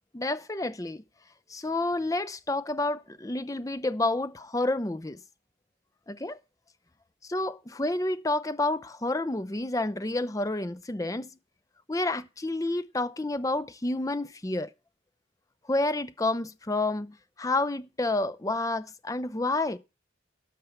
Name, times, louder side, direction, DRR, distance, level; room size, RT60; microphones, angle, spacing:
voice 1, 0.1-1.0 1.5-5.2 6.1-6.4 7.3-11.3 11.9-14.7 15.7-19.8, left 2 dB, 15° left, 0.5 m, -29 dB
12.5 x 5.7 x 6.8 m
head